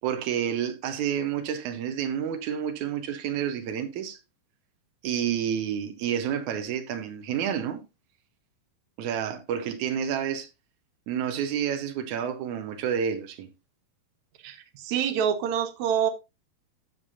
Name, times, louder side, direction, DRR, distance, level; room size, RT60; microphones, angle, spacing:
voice 1, 0.0-4.2 5.0-7.8 9.0-10.5 11.1-13.5, right 8 dB, 85° right, 1.7 m, -29 dB
voice 2, 14.4-16.1, right 8 dB, 65° right, 1.9 m, -26 dB
13.0 x 7.4 x 2.6 m
omnidirectional pair, 4.6 m